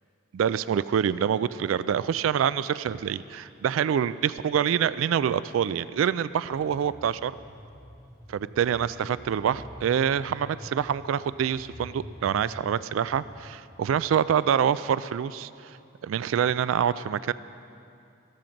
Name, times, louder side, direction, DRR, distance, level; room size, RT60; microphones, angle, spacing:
voice 1, 0.3-7.3 8.3-17.3, right 8 dB, 85° right, 17 dB, 0.3 m, -26 dB
sound 1, 6.5-13.4, equal, 15° right, 3.5 m, -46 dB
14.0 x 13.5 x 5.2 m, 2.6 s
head